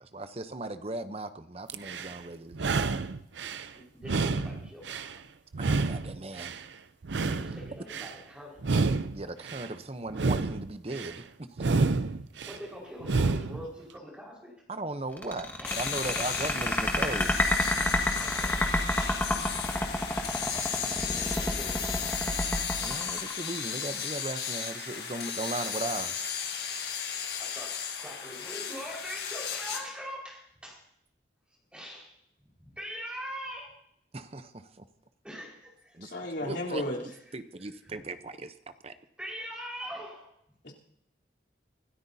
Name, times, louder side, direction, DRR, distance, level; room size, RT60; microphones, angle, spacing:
voice 1, 0.0-2.6 5.6-6.5 9.1-11.7 14.7-17.5 22.8-26.3 34.1-34.8 35.9-36.1 36.4-36.8 37.3-38.5 38.8-38.9, right 2 dB, 35° right, 10 dB, 0.7 m, -37 dB
sound 1, 1.7-2.2 2.5-3.7 4.0-5.2 5.5-6.6 7.0-8.1 8.6-9.7 10.1-11.2 11.6-12.6 13.0-13.7, right 3 dB, 80° right, 0.6 m, -29 dB
voice 2, 3.7-5.2 7.3-8.8 12.4-14.5 15.6-15.8 18.2-18.7 21.0-22.1 27.4-30.8 31.7-32.1 32.6-33.8 35.2-36.3 37.1-37.2 37.6-38.0 39.2-40.3, equal, 5° right, -3 dB, 4.8 m, -43 dB
sound 2, 15.2-23.8, left 1 dB, 10° left, 1.5 m, -28 dB
sound 3, 15.6-29.8, left 7 dB, 60° left, 1.7 m, -35 dB
voice 3, 36.0-37.0 40.6-40.7, left 1 dB, 75° left, -4 dB, 3.6 m, -33 dB
25.5 x 13.5 x 2.8 m, 0.73 s
head